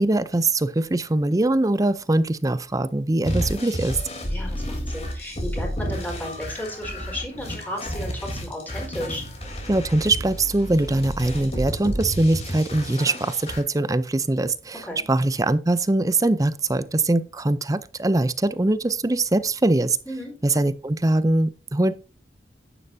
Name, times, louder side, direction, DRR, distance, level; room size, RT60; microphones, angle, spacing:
voice 1, 0.0-4.0 9.7-20.0 20.4-22.0, right 2 dB, 20° right, 0.5 m, -22 dB
sound 1, 3.2-13.6, equal, 35° left, 3.3 m, -31 dB
voice 2, 4.2-9.2 14.8-15.0 20.1-20.3, equal, 10° left, 4.5 m, -34 dB
11.0 x 10.0 x 2.7 m
head